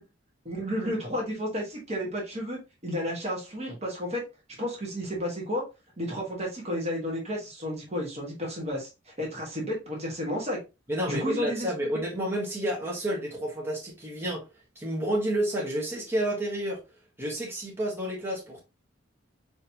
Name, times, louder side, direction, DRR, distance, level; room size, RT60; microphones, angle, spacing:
voice 1, 0.4-4.2 4.6-5.6 6.0-10.6 11.1-11.7, equal, 35° right, 1.3 m, -32 dB
voice 2, 10.9-14.4 14.7-16.8 17.2-18.6, right 1 dB, 15° right, 1.3 m, -30 dB
4.3 x 3.1 x 2.7 m
head